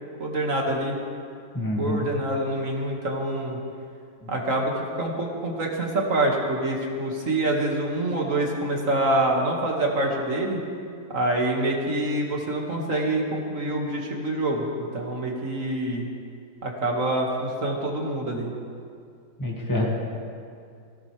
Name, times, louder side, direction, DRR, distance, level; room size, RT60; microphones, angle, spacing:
voice 1, 0.2-1.0 1.8-3.6 4.3-10.6 11.1-16.1 16.6-18.5, right 1 dB, 45° right, -1 dB, 2.4 m, -26 dB
voice 2, 1.5-2.1 4.2-4.3 19.4-19.9, left 1 dB, 10° left, -3 dB, 2.2 m, -27 dB
20.0 x 16.5 x 3.4 m, 2.3 s
omnidirectional pair, 2.0 m